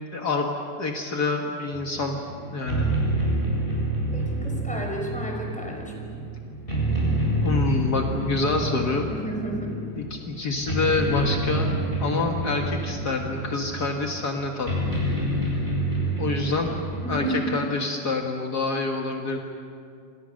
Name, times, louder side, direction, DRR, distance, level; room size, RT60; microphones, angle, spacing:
voice 1, 0.1-0.5 0.8-2.2 2.5-2.9 7.4-9.1 10.0-15.0 16.2-16.7 17.1-19.4, left 3 dB, 60° left, 1 dB, 2.2 m, -27 dB
sound 1, 1.7-17.4, right 1 dB, 30° left, 7.9 m, -28 dB
voice 2, 4.1-6.1 9.1-9.6 17.0-17.5, right 1 dB, 5° left, 0 dB, 5.7 m, -32 dB
28.5 x 27.5 x 6.5 m, 2.3 s
omnidirectional pair, 1.9 m